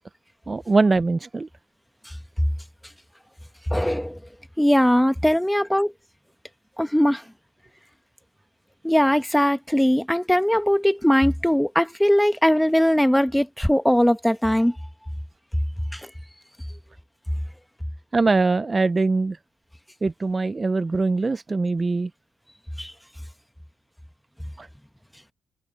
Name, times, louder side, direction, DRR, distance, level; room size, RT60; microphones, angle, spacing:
voice 1, 0.5-1.5 18.1-19.4 20.0-22.1 24.6-24.7, right 3 dB, 25° right, 0.5 m, -22 dB
voice 2, 3.7-4.2 4.6-5.9 6.8-7.2 8.8-14.7 15.9-16.1 22.8-22.9, equal, 5° left, 1.2 m, -20 dB
open air
cardioid pair, 90°, 0 cm